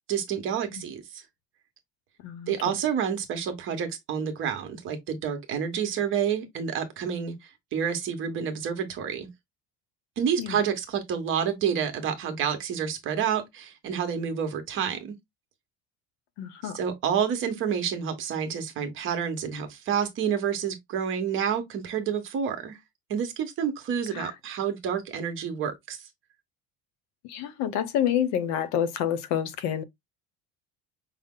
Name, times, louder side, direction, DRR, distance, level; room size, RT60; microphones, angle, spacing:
voice 1, 0.1-1.2 2.5-9.3 10.2-15.1 16.6-22.8 23.1-26.0, right 8 dB, 40° right, 1.1 m, -29 dB
voice 2, 2.2-2.7 10.4-10.6 16.4-16.8 24.1-24.3 27.2-29.8, left 9 dB, 65° left, 0.7 m, -28 dB
5.5 x 2.0 x 3.7 m
cardioid pair, 180°, 30 cm